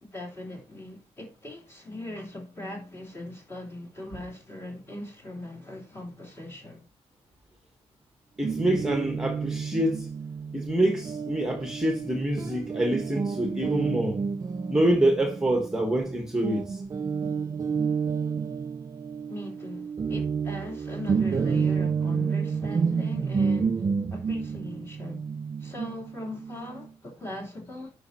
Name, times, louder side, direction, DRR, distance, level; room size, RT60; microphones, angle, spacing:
voice 1, 0.0-6.8 19.3-23.8 24.1-25.2 25.6-27.9, left 1 dB, 20° left, 3.1 m, -39 dB
voice 2, 8.4-10.1 10.5-14.2 14.7-16.8, right 1 dB, 5° right, 1.2 m, -26 dB
Guitar, 8.4-16.1 16.4-26.9, right 5 dB, 30° right, 0.4 m, -30 dB
9.6 x 5.4 x 2.8 m
cardioid pair, 130°, 11 cm